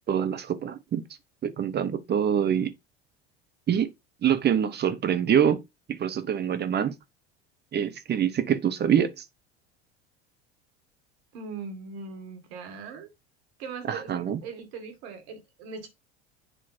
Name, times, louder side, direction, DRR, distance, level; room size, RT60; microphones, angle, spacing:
voice 1, 0.1-1.0 1.4-2.7 3.7-3.9 4.2-5.6 5.9-6.9 7.7-9.2 13.9-14.4, right 8 dB, 30° right, 0.9 m, -25 dB
voice 2, 11.3-13.1 13.6-15.9, right 5 dB, 70° right, 2.1 m, -40 dB
7.8 x 3.0 x 4.3 m
hypercardioid pair, 85°, 32 cm